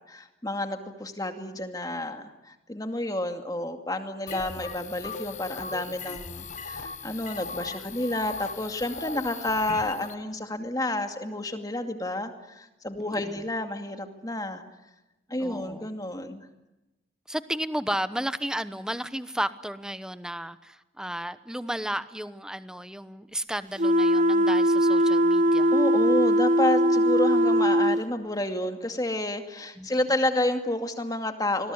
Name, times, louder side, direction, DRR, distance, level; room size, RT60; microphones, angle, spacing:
voice 1, 0.1-14.6 15.3-16.4 25.7-31.7, left 1 dB, 20° left, 6 dB, 2.4 m, -30 dB
sound 1, 4.3-10.1, left 4 dB, 40° left, 1.1 m, -38 dB
voice 2, 13.0-13.5 15.4-15.9 17.3-25.7 29.8-29.9, right 1 dB, 5° right, 12 dB, 1.0 m, -33 dB
sound 2, 23.8-28.0, equal, 40° right, 1.0 m, -21 dB
26.5 x 21.5 x 9.7 m, 0.99 s
head